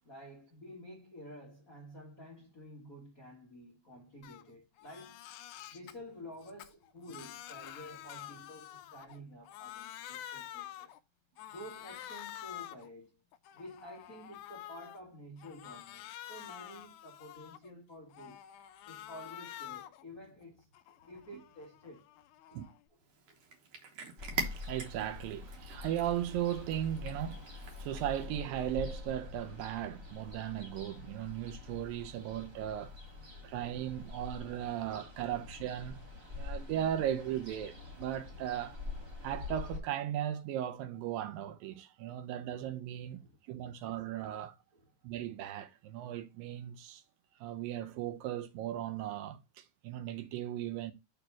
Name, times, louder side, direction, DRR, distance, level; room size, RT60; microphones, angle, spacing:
voice 1, 0.0-5.2 5.7-10.9 11.5-13.2 13.5-18.4 18.9-22.1 22.5-22.6 22.9-23.0 23.3-23.4 33.3-33.6 34.1-34.3 34.6-34.7 34.9-35.0 35.3-35.4 42.0-42.1 43.2-44.1 44.7-44.9, equal, 40° left, 1.2 m, -51 dB
Crying sobbing, 4.2-4.4 4.8-5.9 6.4-9.2 9.4-11.0 11.4-12.9 13.3-15.0 15.4-17.7 18.1-20.0 20.4-22.8, left 13 dB, 80° left, 1.8 m, -48 dB
Cat, 23.0-28.3, right 3 dB, 60° right, 1.9 m, -44 dB
Ocean, 24.2-39.8, left 3 dB, 30° right, 1.7 m, -46 dB
voice 2, 24.4-33.0 33.4-36.0 36.3-38.8 39.2-43.2 43.5-44.6 45.0-47.0 47.4-50.9, right 11 dB, 80° right, 2.3 m, -37 dB
6.8 x 3.1 x 5.9 m
omnidirectional pair, 4.2 m